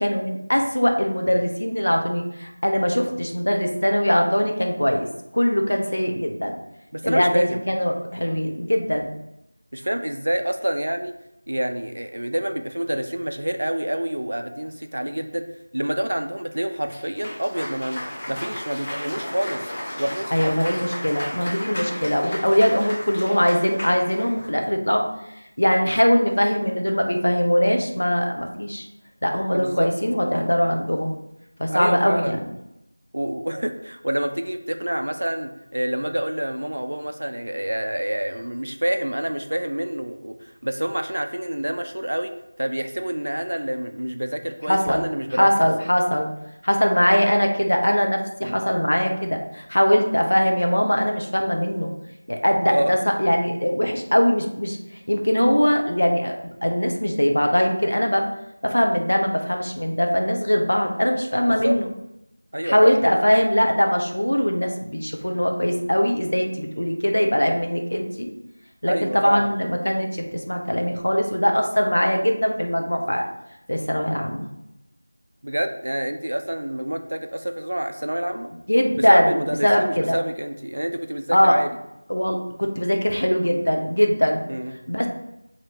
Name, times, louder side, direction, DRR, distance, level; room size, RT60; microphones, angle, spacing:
voice 1, 0.0-5.1 5.3-6.6 7.0-9.1 20.3-25.0 25.6-28.9 29.2-31.1 31.6-32.4 44.7-45.0 45.3-46.3 46.6-51.9 52.3-54.8 55.1-58.2 58.6-61.9 62.6-68.3 68.8-73.2 73.7-74.5 78.7-80.2 81.3-81.6 82.1-84.4 84.9-85.1, equal, 65° left, 3 dB, 0.7 m, -21 dB
voice 2, 6.9-7.6 9.7-11.1 11.5-15.5 15.7-18.0 18.3-19.7 20.0-20.9 29.5-29.9 31.7-32.4 33.1-40.3 40.6-42.3 42.6-45.5 48.4-48.6 52.6-52.9 61.5-61.8 62.5-63.0 68.9-69.5 75.4-78.5 79.0-81.7 84.5-84.8, right 1 dB, 55° right, 7 dB, 0.4 m, -27 dB
Cheering / Applause, 16.9-24.6, equal, 20° left, 0.7 m, -34 dB
4.9 x 2.9 x 2.8 m, 0.85 s
figure-of-eight pair, 175°, 0 cm